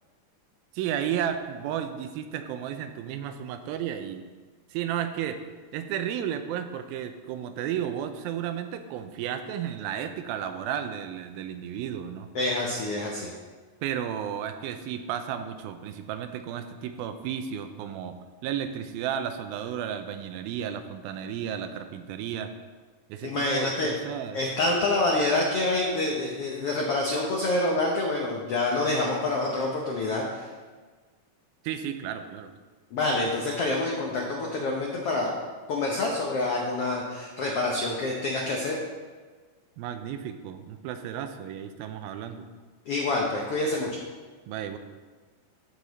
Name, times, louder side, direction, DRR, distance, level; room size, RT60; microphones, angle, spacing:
voice 1, 0.7-4.2 4.7-5.4 5.7-12.3 13.8-22.5 23.1-24.4 31.6-32.5 39.8-42.5 44.5-44.8, right 9 dB, 90° right, 8 dB, 2.5 m, -33 dB
voice 2, 12.3-13.3 23.2-23.9 24.3-30.5 32.9-35.3 35.7-38.8 42.9-44.0, left 2 dB, 85° left, -1 dB, 1.3 m, -27 dB
13.5 x 5.0 x 4.0 m, 1.4 s
omnidirectional pair, 4.1 m